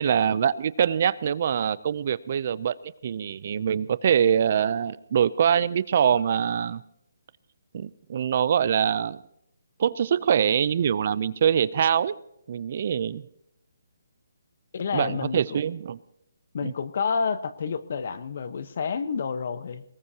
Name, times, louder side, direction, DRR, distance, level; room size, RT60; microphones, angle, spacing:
voice 1, 0.0-2.7 3.0-6.8 7.7-9.2 9.8-12.2 12.5-13.2 14.9-16.0 16.6-16.7, right 8 dB, 40° right, 18 dB, 0.5 m, -24 dB
voice 2, 14.7-15.6 16.5-19.8, left 5 dB, 50° left, 13 dB, 1.0 m, -29 dB
23.0 x 20.0 x 2.9 m, 0.75 s
hypercardioid pair, 165°, 0 cm